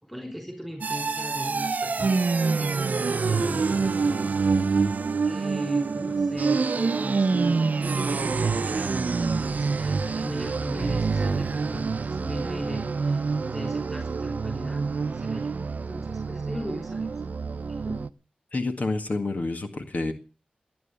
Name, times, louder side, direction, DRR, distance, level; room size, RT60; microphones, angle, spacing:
voice 1, 0.0-5.0 5.2-14.8 15.1-17.1 17.7-18.0, equal, ahead, 4 dB, 4.9 m, -38 dB
sound 1, 0.8-18.1, right 4 dB, 65° right, 0.7 m, -26 dB
voice 2, 18.5-20.1, left 3 dB, 60° left, 7 dB, 1.8 m, -28 dB
17.5 x 9.6 x 6.9 m, 0.36 s
wide cardioid pair, 60°, 3 cm